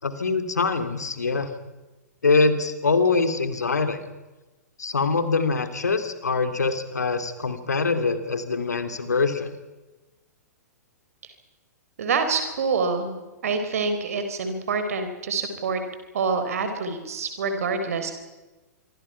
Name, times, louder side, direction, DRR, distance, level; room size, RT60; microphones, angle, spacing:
voice 1, 0.0-1.5 2.2-4.0 4.8-9.5, left 4 dB, 70° left, 10 dB, 3.0 m, -24 dB
voice 2, 12.0-13.1 13.4-15.8 16.1-18.1, right 4 dB, 55° right, 7 dB, 4.2 m, -26 dB
25.5 x 25.5 x 5.8 m, 1.1 s
figure-of-eight pair, 110°, 9 cm